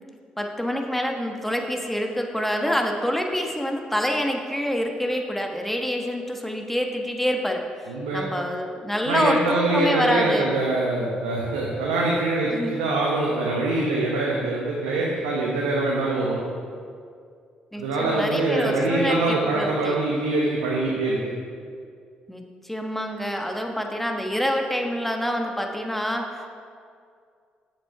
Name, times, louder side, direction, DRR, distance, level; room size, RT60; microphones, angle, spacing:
voice 1, 0.4-7.6 8.1-10.5 12.5-12.8 17.7-20.0 22.3-26.5, equal, 5° left, 3 dB, 1.2 m, -26 dB
voice 2, 7.9-8.3 9.1-16.4 17.8-21.2, right 2 dB, 85° right, -3 dB, 0.9 m, -24 dB
7.7 x 7.4 x 4.7 m, 2.2 s
hypercardioid pair, 45°, 4 cm